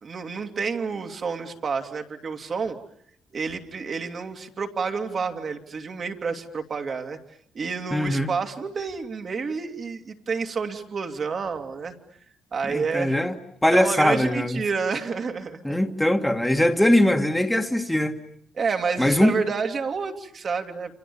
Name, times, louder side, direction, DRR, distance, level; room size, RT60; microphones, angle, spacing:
voice 1, 0.0-2.8 3.3-7.2 7.5-12.0 12.5-13.2 13.7-15.6 18.6-20.9, right 5 dB, 45° right, 2.8 m, -29 dB
voice 2, 7.9-8.3 12.7-13.4 13.6-14.6 15.6-18.2 19.0-19.4, left 1 dB, 5° left, 1.9 m, -21 dB
29.5 x 27.0 x 7.2 m
cardioid pair, 90°, 0 cm